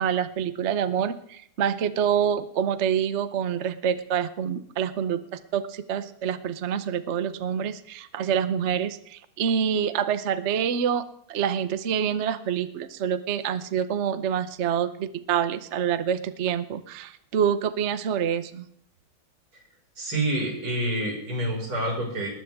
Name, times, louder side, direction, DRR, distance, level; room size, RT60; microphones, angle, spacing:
voice 1, 0.0-11.0 11.3-18.6, right 8 dB, 50° right, 12 dB, 0.8 m, -26 dB
voice 2, 20.0-22.3, right 1 dB, 85° right, 0 dB, 6.2 m, -27 dB
20.0 x 19.5 x 3.6 m, 0.68 s
omnidirectional pair, 2.3 m